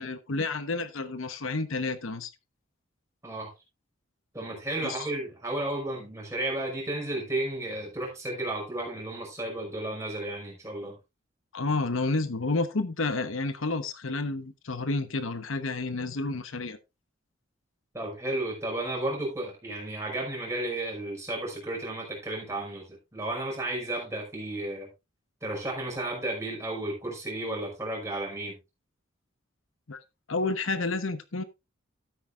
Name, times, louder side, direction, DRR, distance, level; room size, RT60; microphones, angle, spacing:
voice 1, 0.0-2.3 4.8-5.1 11.5-16.8 29.9-30.0 30.3-31.4, left 3 dB, 80° left, 1.0 m, -30 dB
voice 2, 4.3-11.0 17.9-24.9 25.4-28.6, right 1 dB, 15° right, 5.4 m, -33 dB
13.0 x 9.8 x 2.4 m
head